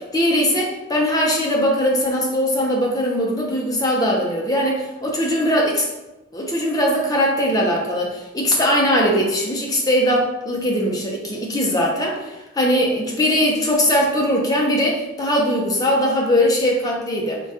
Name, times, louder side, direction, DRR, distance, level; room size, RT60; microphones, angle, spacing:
voice 1, 0.0-5.9 6.3-17.4, equal, 20° left, -2 dB, 0.5 m, -20 dB
4.0 x 2.2 x 3.5 m, 1.0 s
head